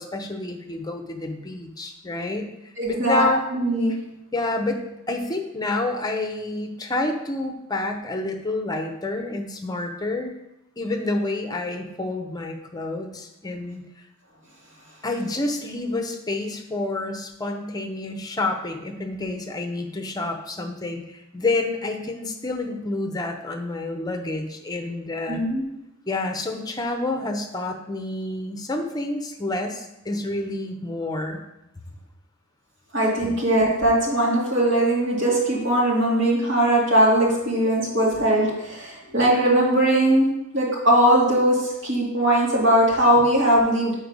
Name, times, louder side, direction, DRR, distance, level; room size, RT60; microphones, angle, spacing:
voice 1, 0.0-3.4 4.3-10.3 10.8-13.8 15.0-21.0 21.3-25.4 26.1-31.4 33.2-33.3, left 2 dB, 20° left, 3 dB, 0.7 m, -28 dB
voice 2, 2.8-3.9 25.3-25.6 32.9-40.3 40.5-41.6 41.8-43.9, right 1 dB, 60° right, -4 dB, 2.4 m, -20 dB
6.6 x 4.6 x 5.2 m, 0.89 s
head